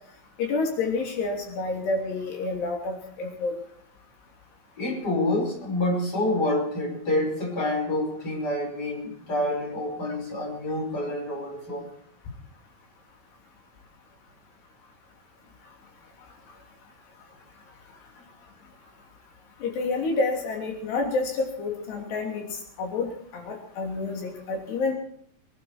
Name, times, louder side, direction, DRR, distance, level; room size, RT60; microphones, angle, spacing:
voice 1, 0.4-3.5 19.6-22.5 22.8-24.9, left 3 dB, 85° left, 2 dB, 5.3 m, -29 dB
voice 2, 4.8-11.9, left 1 dB, 25° left, 1 dB, 5.5 m, -27 dB
24.5 x 12.0 x 4.5 m, 0.65 s
omnidirectional pair, 4.7 m